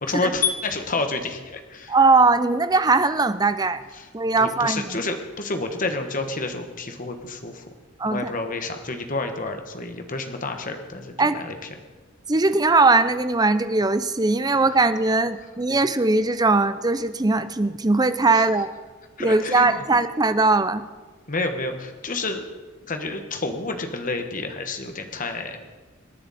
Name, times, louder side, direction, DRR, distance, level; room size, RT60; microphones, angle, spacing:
voice 1, 0.0-2.0 4.0-4.1 4.4-7.6 8.0-11.5 18.3-18.4 19.2-19.8 21.3-22.4 22.9-25.6, left 3 dB, 40° left, 6 dB, 1.3 m, -29 dB
voice 2, 1.9-3.8 4.1-5.0 8.0-8.2 11.2-11.5 12.3-18.7 19.2-20.8, right 3 dB, 20° right, 12 dB, 0.6 m, -20 dB
25.5 x 10.0 x 4.2 m, 1.4 s
head